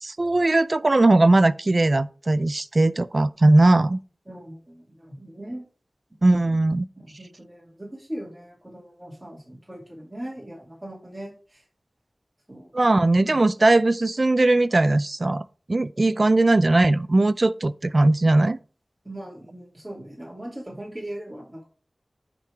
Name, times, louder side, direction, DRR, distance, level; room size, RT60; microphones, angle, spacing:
voice 1, 0.0-4.0 6.2-6.9 12.7-18.6, right 2 dB, 50° right, 0.4 m, -19 dB
voice 2, 4.3-5.6 7.0-11.6 12.5-12.7 19.0-21.7, right 1 dB, 20° right, 2.5 m, -39 dB
10.5 x 3.7 x 4.6 m
wide cardioid pair, 75°, 0 cm